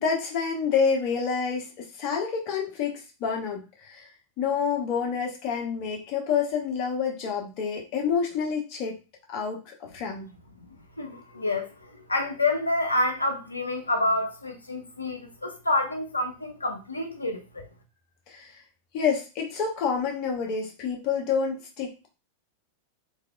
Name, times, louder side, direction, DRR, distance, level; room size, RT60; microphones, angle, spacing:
voice 1, 0.0-4.1 4.4-9.0 9.3-10.3 18.3-18.6 18.9-22.1, left 6 dB, 40° left, 0.9 m, -28 dB
voice 2, 10.6-17.7, left 2 dB, 80° left, 0.5 m, -28 dB
3.2 x 2.4 x 2.2 m
figure-of-eight pair, 90°, 0 cm